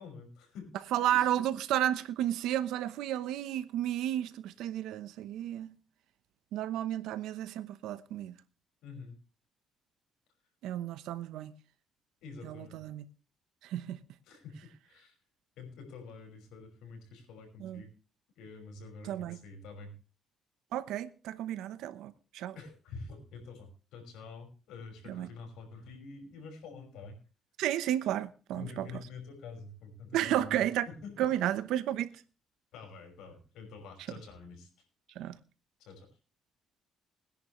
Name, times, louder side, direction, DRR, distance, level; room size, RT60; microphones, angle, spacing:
voice 1, 0.0-0.7 1.1-1.3 8.8-9.2 12.2-12.8 14.3-15.1 15.6-17.9 18.4-19.9 22.6-27.2 28.5-31.3 32.7-34.7 35.8-36.1, left 4 dB, 90° left, 5.8 m, -47 dB
voice 2, 0.9-5.7 6.5-8.3 10.6-11.5 12.4-13.0 13.6-14.0 17.6-17.8 19.0-19.4 20.7-22.6 25.1-25.3 27.6-28.9 30.1-30.9 31.2-32.1 35.2-35.4, right 12 dB, 90° right, 1.0 m, -32 dB
21.0 x 10.5 x 3.2 m
cardioid pair, 90°, 0 cm